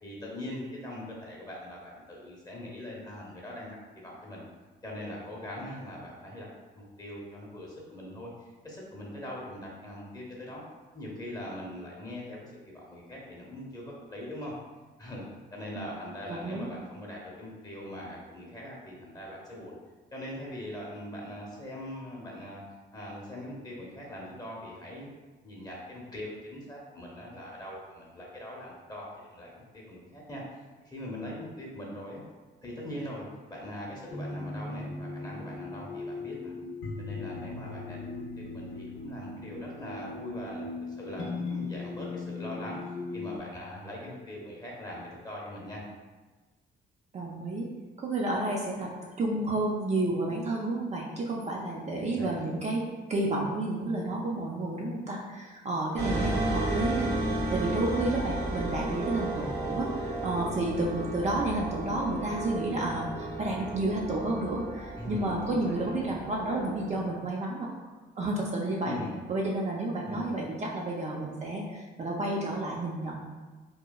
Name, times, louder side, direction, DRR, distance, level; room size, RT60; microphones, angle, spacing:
voice 1, 0.0-3.7 3.9-4.4 4.8-10.6 10.9-14.5 15.0-15.2 15.5-19.8 20.1-22.6 22.9-25.1 25.4-30.4 30.8-32.2 32.6-36.5 37.0-42.8 43.1-45.8 52.0-52.5 56.0-56.3 65.0-66.1 68.8-69.2 70.0-70.3, left 1 dB, 20° left, -3 dB, 0.8 m, -41 dB
voice 2, 16.3-16.7 47.1-47.7 48.0-48.9 49.2-52.8 53.1-67.9 68.2-69.0 69.3-73.3, right 2 dB, 35° right, -2 dB, 0.4 m, -31 dB
sound 1, 34.1-43.4, left 3 dB, 85° left, 0.6 m, -38 dB
sound 2, 56.0-67.2, right 2 dB, 60° right, 1.1 m, -33 dB
2.9 x 2.2 x 2.3 m, 1.3 s
cardioid pair, 90°, 20 cm